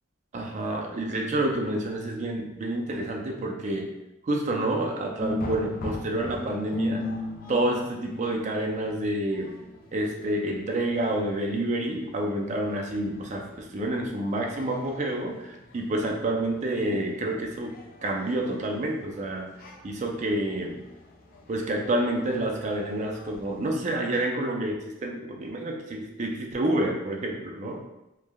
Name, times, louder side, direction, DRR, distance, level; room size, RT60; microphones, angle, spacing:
voice 1, 0.3-3.9 4.2-7.1 7.5-9.6 9.9-17.8 18.0-19.5 19.8-20.8 21.5-27.8, right 1 dB, 35° right, 1 dB, 0.4 m, -28 dB
sound 1, 5.2-23.8, left 1 dB, 45° left, 0.4 m, -40 dB
3.2 x 2.1 x 2.2 m, 0.93 s
head